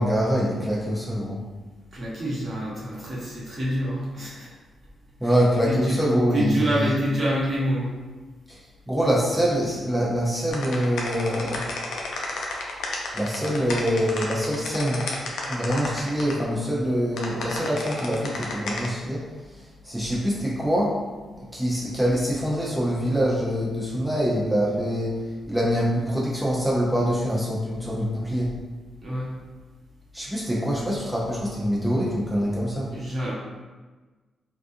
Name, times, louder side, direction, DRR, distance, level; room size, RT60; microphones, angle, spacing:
voice 1, 0.0-1.4 5.2-6.9 8.5-11.7 13.1-15.0 15.5-21.0 21.4-28.5 30.1-32.9, equal, 5° right, -6 dB, 0.7 m, -25 dB
voice 2, 1.9-4.5 5.7-6.0 6.3-7.9 29.0-29.3 32.9-33.3, equal, 50° right, -7 dB, 1.0 m, -27 dB
sound 1, 10.5-16.3 17.1-18.9, left 3 dB, 70° left, 0.4 m, -31 dB
2.3 x 2.3 x 2.6 m, 1.3 s
hypercardioid pair, 40°, 0 cm